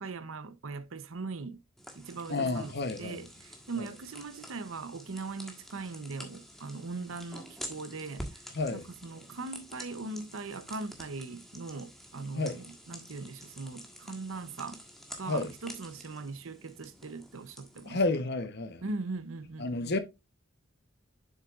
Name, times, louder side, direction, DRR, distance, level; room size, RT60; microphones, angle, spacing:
voice 1, 0.0-1.6 1.9-2.7 3.0-8.4 8.7-14.8 15.2-18.0 18.8-19.7, right 3 dB, 80° right, 0.8 m, -40 dB
sound 1, 1.8-18.1, equal, ahead, 1.4 m, -48 dB
voice 2, 2.3-3.2 3.8-3.9 8.5-8.8 12.3-12.6 15.3-15.5 17.8-18.8 19.6-20.0, left 3 dB, 55° left, 0.9 m, -31 dB
7.5 x 6.7 x 2.4 m
head